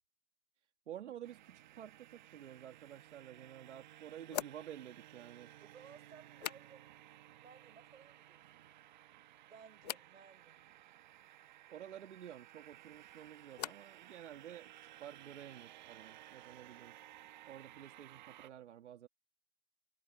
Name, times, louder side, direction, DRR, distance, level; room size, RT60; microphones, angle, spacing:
voice 1, 0.9-5.5 11.7-17.0 17.5-19.1, right 10 dB, 60° right, 1.8 m, -51 dB
sound 1, 1.2-18.5, right 14 dB, 35° right, 1.1 m, -58 dB
sound 2, 3.0-3.1 4.3-7.1 7.4-8.0 8.3-9.0 9.8-10.2 12.6-14.0 14.3-14.9, left 11 dB, 30° left, 0.6 m, -48 dB
voice 2, 5.6-6.9 7.4-8.5 9.5-10.6, right 6 dB, 85° right, 5.7 m, -59 dB
hypercardioid pair, 160°, 39 cm